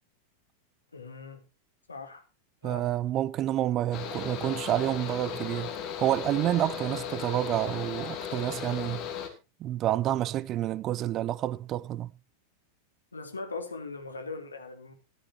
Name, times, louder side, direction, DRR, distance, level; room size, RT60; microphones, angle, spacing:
voice 1, 0.9-1.4 1.9-2.2 2.6-2.9 13.1-14.9, left 3 dB, 75° left, 2.7 m, -40 dB
voice 2, 2.6-9.1 9.6-12.1, right 13 dB, 35° right, 0.6 m, -29 dB
Mechanical fan, 3.9-9.3, left 8 dB, 40° left, 2.6 m, -36 dB
13.5 x 13.0 x 2.9 m
figure-of-eight pair, 90°, 0 cm